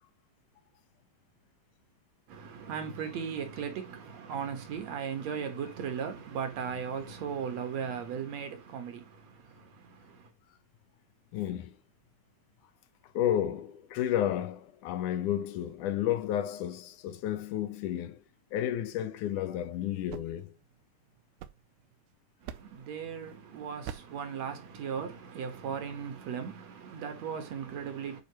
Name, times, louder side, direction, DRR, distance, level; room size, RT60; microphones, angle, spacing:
voice 1, 2.3-10.3 22.4-28.2, right 7 dB, 60° right, 2.2 m, -37 dB
voice 2, 11.3-11.7 13.2-18.2 18.5-20.5, left 11 dB, 80° left, 2.1 m, -31 dB
sound 1, 19.8-22.0 22.5-23.0 23.8-24.3, right 10 dB, 85° right, 2.2 m, -45 dB
9.5 x 4.3 x 2.9 m
omnidirectional pair, 3.8 m